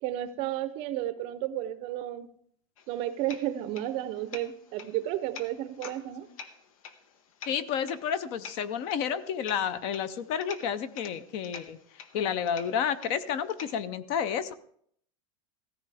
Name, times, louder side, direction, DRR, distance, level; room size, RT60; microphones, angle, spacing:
voice 1, 0.0-2.3 2.9-6.3, right 13 dB, 30° right, 14 dB, 0.6 m, -32 dB
sound 1, 2.8-13.9, left 6 dB, 85° left, 1.4 m, -48 dB
voice 2, 7.5-11.8 12.1-14.5, left 8 dB, 35° left, 16 dB, 0.5 m, -30 dB
16.0 x 14.0 x 3.4 m, 0.66 s
supercardioid pair, 175°, 17 cm